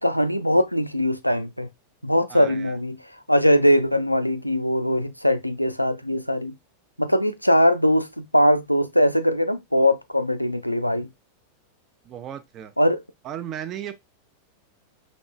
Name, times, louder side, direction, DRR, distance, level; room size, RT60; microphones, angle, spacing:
voice 1, 0.0-1.7 2.0-3.0 3.3-6.6 7.0-11.1 12.8-13.0, equal, 90° left, 0.4 m, -21 dB
voice 2, 2.3-2.8 12.0-12.7 13.2-13.9, right 10 dB, 35° right, 0.6 m, -35 dB
5.2 x 3.1 x 2.2 m
figure-of-eight pair, 90°, 0 cm